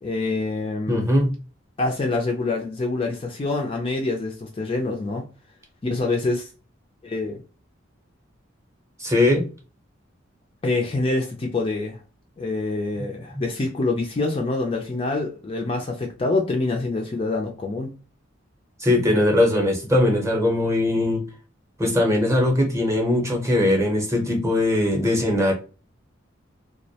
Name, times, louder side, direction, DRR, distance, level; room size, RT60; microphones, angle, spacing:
voice 1, 0.0-1.0 1.8-5.2 5.8-6.5 7.0-7.4 10.6-12.0 12.4-17.9, left 3 dB, 30° left, 0.3 m, -26 dB
voice 2, 0.9-1.4 9.0-9.5 18.8-21.2 21.8-25.5, left 1 dB, 15° right, 0.7 m, -20 dB
2.3 x 2.0 x 2.7 m
head